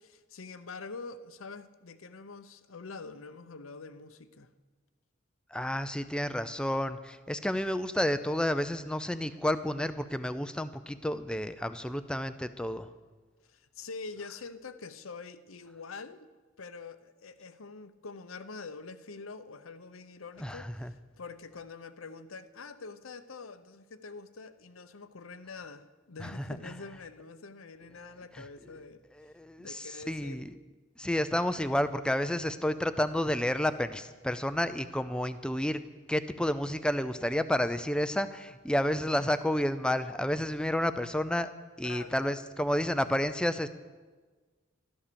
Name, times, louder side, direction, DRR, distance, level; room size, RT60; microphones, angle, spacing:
voice 1, 0.0-4.5 13.5-16.3 16.6-29.0 29.6-30.5 41.8-42.3, left 4 dB, 90° left, 12 dB, 0.8 m, -45 dB
voice 2, 5.5-12.9 20.4-20.9 26.2-26.3 29.3-30.5 31.0-35.8 36.1-41.5 41.8-43.7, left 1 dB, 5° left, 11 dB, 0.4 m, -30 dB
13.0 x 11.5 x 6.9 m, 1.4 s
head